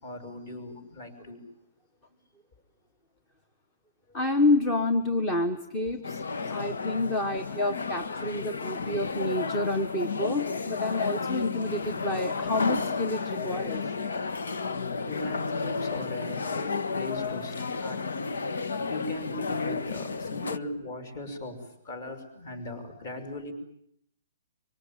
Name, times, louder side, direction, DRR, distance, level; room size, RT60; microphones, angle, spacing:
voice 1, 0.0-1.4 14.8-18.1 18.9-23.5, left 2 dB, 35° left, 8 dB, 6.0 m, -38 dB
voice 2, 4.1-13.9, left 2 dB, 10° left, 8 dB, 1.1 m, -28 dB
sound 1, 6.0-20.6, left 4 dB, 85° left, 1.6 m, -32 dB
25.5 x 24.5 x 9.0 m, 0.72 s
hypercardioid pair, 180°, 0 cm